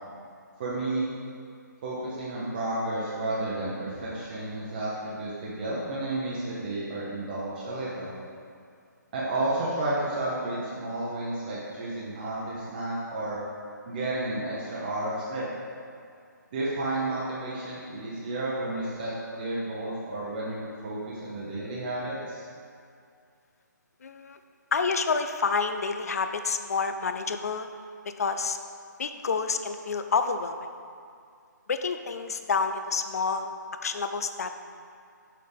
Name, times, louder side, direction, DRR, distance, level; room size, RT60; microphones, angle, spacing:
voice 1, 0.6-1.1 1.8-8.1 9.1-13.4 13.9-15.5 16.5-22.5, right 2 dB, 25° right, -7 dB, 0.8 m, -32 dB
voice 2, 24.0-24.4 24.7-27.7 28.2-28.6 29.0-30.6 31.7-33.5 33.8-34.6, left 5 dB, 55° left, 8 dB, 0.4 m, -28 dB
6.4 x 5.6 x 3.5 m, 2.3 s
hypercardioid pair, 165°, 10 cm